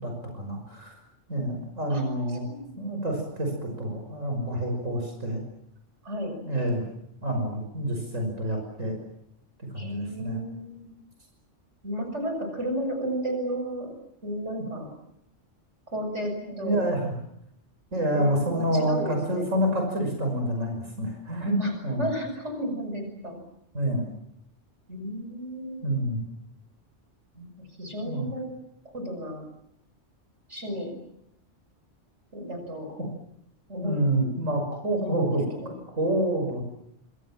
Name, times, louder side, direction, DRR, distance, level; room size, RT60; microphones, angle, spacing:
voice 1, 0.0-0.9 1.3-2.5 2.8-5.4 6.4-6.9 7.2-8.9 9.6-10.4 16.4-17.1 17.9-21.6 21.8-22.1 23.7-24.0 25.8-26.2 28.0-28.3 33.8-35.4 36.0-36.6, right 1 dB, 85° right, 3 dB, 6.3 m, -28 dB
voice 2, 2.3-3.1 6.0-6.3 9.8-10.9 11.8-13.9 14.2-14.9 15.9-16.8 18.1-19.5 21.6-21.7 22.0-23.4 24.9-25.8 27.3-27.5 27.8-28.5 28.9-29.4 30.5-31.0 32.3-32.9 33.7-34.0 35.0-35.8, equal, 65° right, 5 dB, 7.0 m, -33 dB
27.5 x 26.0 x 7.5 m, 0.76 s
omnidirectional pair, 1.3 m